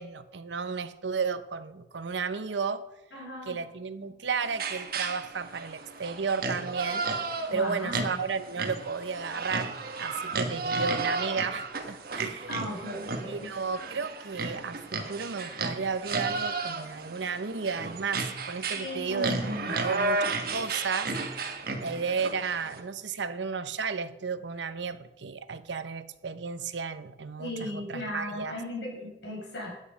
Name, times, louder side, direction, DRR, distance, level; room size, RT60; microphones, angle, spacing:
voice 1, 0.0-2.8 3.5-7.0 7.5-12.5 13.3-19.4 19.7-21.5 21.8-28.6, right 5 dB, 85° right, 0.8 m, -33 dB
voice 2, 3.1-3.5 7.5-8.2 12.5-13.5 18.7-19.8 27.4-29.7, left 1 dB, 85° left, 5.5 m, -36 dB
sound 1, 4.4-22.8, right 3 dB, 55° right, 1.5 m, -33 dB
12.5 x 9.1 x 5.2 m
head